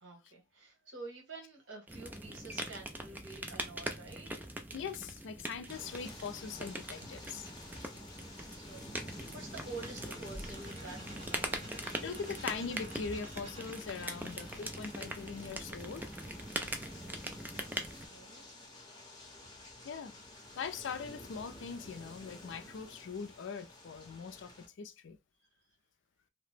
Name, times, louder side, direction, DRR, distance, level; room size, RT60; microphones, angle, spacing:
voice 1, 0.0-4.5 7.0-7.1 8.5-11.7 17.8-18.5, right 3 dB, 70° right, 1.2 m, -49 dB
sound 1, 1.9-18.1, right 1 dB, 10° right, 0.3 m, -42 dB
voice 2, 4.7-7.4 11.7-16.1 19.8-20.1 20.5-24.5 24.8-25.2, left 5 dB, 65° left, 0.4 m, -41 dB
sound 2, 5.7-24.7, left 1 dB, 25° left, 0.9 m, -51 dB
sound 3, 10.3-16.0, right 1 dB, 40° right, 1.3 m, -54 dB
2.8 x 2.1 x 3.2 m
head